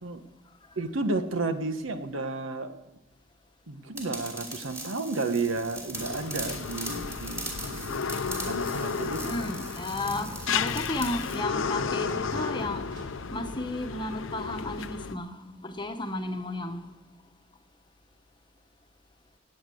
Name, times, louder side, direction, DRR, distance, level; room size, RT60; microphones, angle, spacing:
voice 1, 0.8-2.8 3.7-8.1 8.4-9.6, right 3 dB, 80° right, 1.2 m, -32 dB
sound 1, 4.0-11.4, right 2 dB, 15° right, 3.0 m, -40 dB
sound 2, 5.4-13.3, equal, 65° right, 6.8 m, -46 dB
sound 3, 6.0-15.2, left 6 dB, 75° left, 0.6 m, -33 dB
voice 2, 9.2-12.9 13.3-16.9, left 2 dB, 25° left, 1.1 m, -33 dB
18.0 x 8.9 x 7.7 m
head